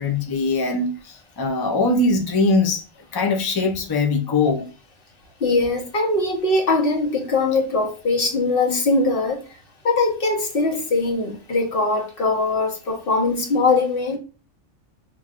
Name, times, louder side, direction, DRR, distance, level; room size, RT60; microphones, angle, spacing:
voice 1, 0.0-2.8 3.1-4.6, left 3 dB, 30° left, 0.4 m, -21 dB
voice 2, 5.4-9.4 9.8-14.2, left 3 dB, 50° left, 1.2 m, -21 dB
5.9 x 3.0 x 2.5 m
omnidirectional pair, 1.2 m